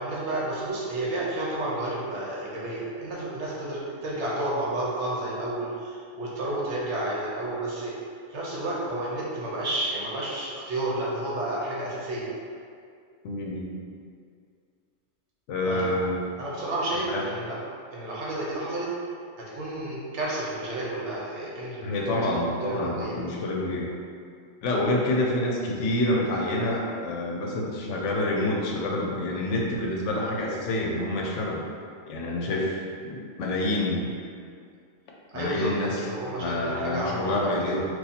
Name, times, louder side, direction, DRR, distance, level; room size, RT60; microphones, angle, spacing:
voice 1, 0.0-8.0 8.3-12.3 15.6-16.0 16.4-17.6 17.9-18.9 19.4-22.3 22.6-23.2 35.3-37.8, right 1 dB, 65° right, -5 dB, 1.0 m, -31 dB
voice 2, 13.2-13.7 15.5-16.2 17.1-17.2 21.8-23.9 24.6-31.6 32.1-34.1 35.3-36.0 36.4-37.8, left 1 dB, 70° left, -2 dB, 0.9 m, -27 dB
2.8 x 2.4 x 3.9 m, 2.3 s
omnidirectional pair, 1.3 m